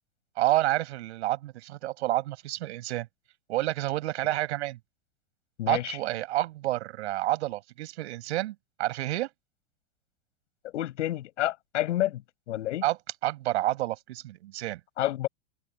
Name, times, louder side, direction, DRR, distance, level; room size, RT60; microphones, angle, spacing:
voice 1, 0.4-3.1 3.5-4.8 5.7-9.3 12.8-13.0 13.2-14.8, right 16 dB, 70° right, 5.7 m, -29 dB
voice 2, 5.6-6.0 10.6-12.8 15.0-15.3, left 14 dB, 80° left, 7.7 m, -29 dB
supercardioid pair, 160°, 35 cm